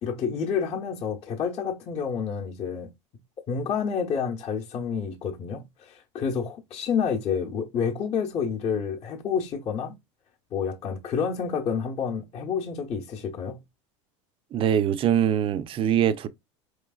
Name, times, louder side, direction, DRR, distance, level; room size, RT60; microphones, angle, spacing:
voice 1, 0.0-2.9 3.5-10.0 10.5-13.6, left 6 dB, 40° left, 0.8 m, -29 dB
voice 2, 14.5-16.3, right 9 dB, 35° right, 0.5 m, -23 dB
4.7 x 3.2 x 2.3 m
hypercardioid pair, 100°, 16 cm